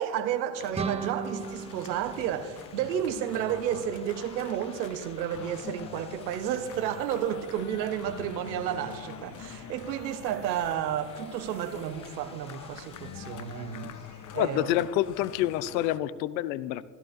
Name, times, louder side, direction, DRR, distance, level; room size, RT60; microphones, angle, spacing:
voice 1, 0.0-13.9 14.3-14.8, right 10 dB, 90° right, 0.9 m, -31 dB
sound 1, 0.5-16.0, left 8 dB, 40° left, 0.8 m, -45 dB
sound 2, 0.7-3.5, right 5 dB, 15° right, 0.4 m, -37 dB
sound 3, 1.0-15.6, left 1 dB, 10° left, 1.5 m, -55 dB
voice 2, 14.3-16.8, left 14 dB, 80° left, 0.6 m, -27 dB
16.0 x 13.5 x 2.6 m
hypercardioid pair, 70°, 50 cm